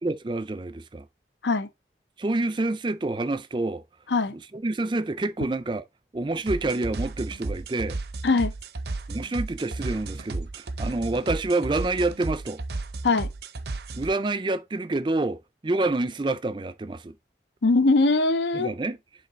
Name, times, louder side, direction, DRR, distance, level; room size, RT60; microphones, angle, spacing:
voice 1, 0.0-1.0 2.2-3.8 4.5-5.8 6.1-8.0 9.1-12.6 13.9-17.2 18.5-19.0, right 2 dB, 25° right, 0.4 m, -27 dB
sound 1, 6.5-14.1, right 2 dB, 65° right, 0.6 m, -33 dB
voice 2, 17.6-18.7, left 3 dB, 90° left, 0.7 m, -21 dB
5.1 x 3.7 x 5.1 m
head